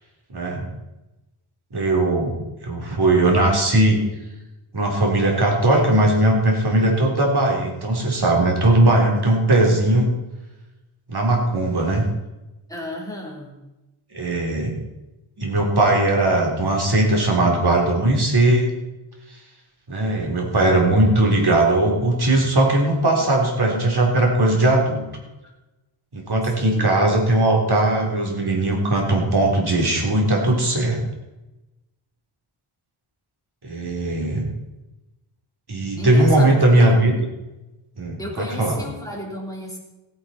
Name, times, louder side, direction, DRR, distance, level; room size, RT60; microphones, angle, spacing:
voice 1, 0.3-0.7 1.7-2.4 2.6-4.0 4.7-10.1 11.1-12.0 14.1-14.7 15.4-18.7 19.9-25.0 26.1-31.0 33.6-34.5 35.7-37.1 38.0-38.8, right 2 dB, 55° right, 0 dB, 3.5 m, -19 dB
voice 2, 12.7-13.6 26.4-26.9 36.0-37.0 38.2-39.8, left 1 dB, 5° left, -2 dB, 3.5 m, -33 dB
16.0 x 10.0 x 4.3 m, 1.0 s
wide cardioid pair, 100°, 48 cm